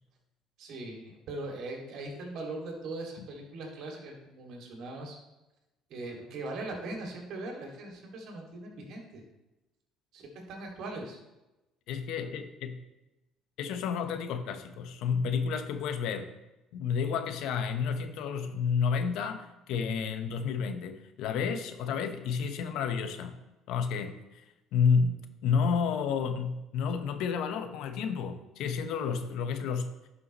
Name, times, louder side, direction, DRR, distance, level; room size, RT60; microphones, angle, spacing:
voice 1, 0.6-5.2 5.9-9.2 10.1-11.2, right 2 dB, 65° right, 0 dB, 2.4 m, -40 dB
voice 2, 11.9-12.8 13.6-16.3 16.7-23.4 23.7-24.2 24.7-25.2 25.4-30.1, left 6 dB, 70° left, 8 dB, 0.9 m, -30 dB
11.0 x 5.7 x 3.1 m, 0.99 s
supercardioid pair, 90°, 0 cm